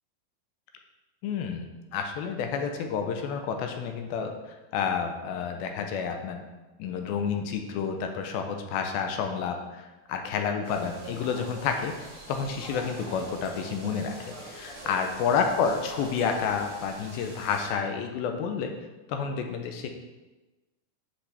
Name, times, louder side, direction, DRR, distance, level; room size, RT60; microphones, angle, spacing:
voice 1, 1.2-1.7 1.9-4.3 4.7-6.4 6.8-9.6 10.1-18.7 19.1-19.9, left 6 dB, 85° left, 5 dB, 2.4 m, -29 dB
sound 1, 10.6-17.7, right 2 dB, 35° right, 0.9 m, -44 dB
7.8 x 5.9 x 3.4 m, 1.1 s
omnidirectional pair, 4.4 m